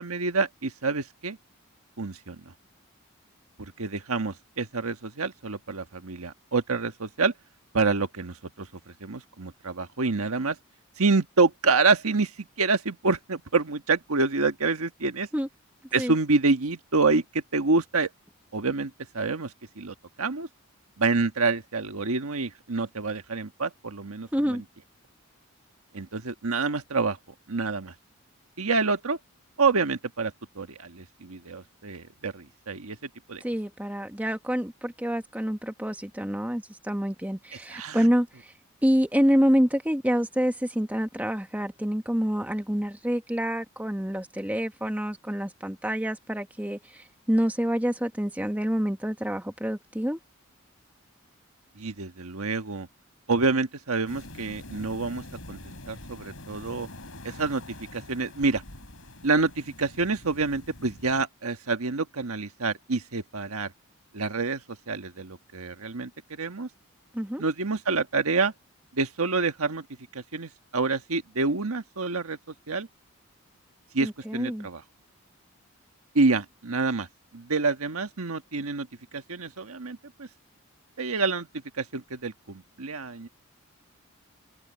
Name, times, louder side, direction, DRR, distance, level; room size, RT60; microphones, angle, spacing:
voice 1, 0.0-1.4 2.0-2.4 3.6-7.3 7.7-8.7 9.0-10.6 11.0-15.3 15.9-18.1 18.5-20.5 21.0-24.6 25.9-27.2 27.5-27.9 28.6-29.2 29.6-33.4 37.7-38.1 51.8-52.9 53.3-55.6 55.9-56.9 57.2-57.6 57.9-58.6 59.2-63.7 64.1-66.7 67.4-68.5 68.9-69.8 70.1-72.4 72.7-72.9 73.9-74.8 76.1-77.1 77.3-78.9 79.1-80.3 81.0-81.5 81.8-83.3, right 3 dB, 80° right, 1.4 m, -27 dB
voice 2, 24.3-24.6 33.4-38.5 38.8-50.2 67.1-67.4 74.0-74.7, equal, 5° right, 1.3 m, -27 dB
sound 1, 54.1-61.2, left 1 dB, 65° left, 5.1 m, -45 dB
head